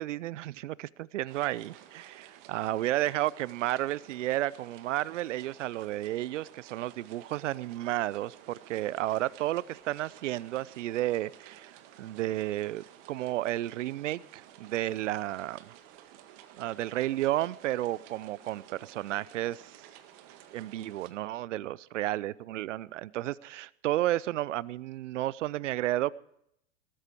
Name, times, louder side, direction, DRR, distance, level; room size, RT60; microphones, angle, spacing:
voice 1, 0.0-15.7 16.6-19.8 20.5-26.1, right 15 dB, 60° right, 22 dB, 0.7 m, -32 dB
sound 1, 1.3-21.1, right 11 dB, 40° right, 1.8 m, -53 dB
18.5 x 13.5 x 4.6 m, 0.74 s
hypercardioid pair, 110°, 42 cm